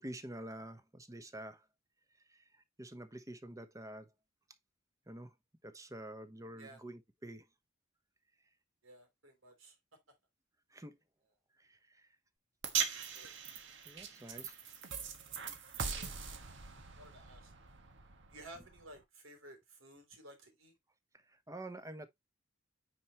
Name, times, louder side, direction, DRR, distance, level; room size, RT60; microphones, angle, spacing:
voice 1, 0.0-1.6 2.3-4.1 5.1-5.3 5.6-7.4 10.7-11.0 11.6-12.1 13.8-14.6 21.3-22.1, right 1 dB, 15° right, 1.0 m, -48 dB
voice 2, 8.8-9.8 13.1-13.3 14.3-14.4 15.0-15.4 15.8-16.2 16.9-17.5 18.3-20.8, right 1 dB, 85° right, 3.3 m, -55 dB
sound 1, 12.6-19.0, right 7 dB, 65° right, 1.5 m, -41 dB
9.3 x 4.4 x 3.0 m
head